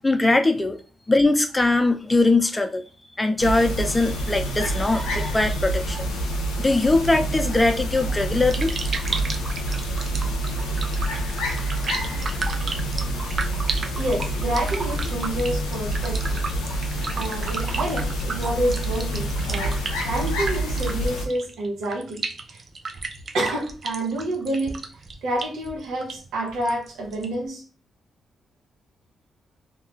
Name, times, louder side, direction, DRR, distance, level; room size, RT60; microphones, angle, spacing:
voice 1, 0.0-0.8 1.1-2.8 3.2-6.1 6.6-8.8, left 2 dB, 20° left, 0.5 m, -21 dB
sound 1, 3.4-21.3, right 1 dB, 90° left, 0.4 m, -27 dB
sound 2, 8.5-27.4, right 4 dB, 50° right, 0.4 m, -34 dB
voice 2, 13.9-16.4 17.1-19.8 20.0-22.2 22.5-22.6 23.3-24.8 25.2-27.6, right 1 dB, 80° right, 0.8 m, -28 dB
2.3 x 2.3 x 3.0 m
supercardioid pair, 50°, 0 cm